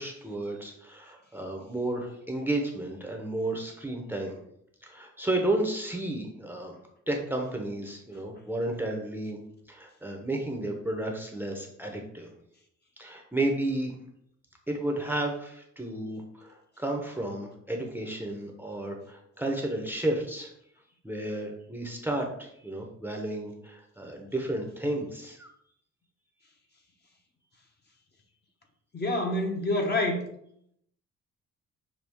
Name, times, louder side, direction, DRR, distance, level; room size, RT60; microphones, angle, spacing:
voice 1, 0.0-4.4 4.8-6.8 7.1-9.4 9.7-12.3 13.0-14.0 14.7-20.5 21.0-25.5, right 1 dB, 5° right, 1 dB, 0.8 m, -32 dB
voice 2, 28.9-30.2, left 2 dB, 35° left, 2 dB, 0.9 m, -27 dB
6.1 x 2.3 x 3.5 m, 0.72 s
cardioid pair, 90°, 30 cm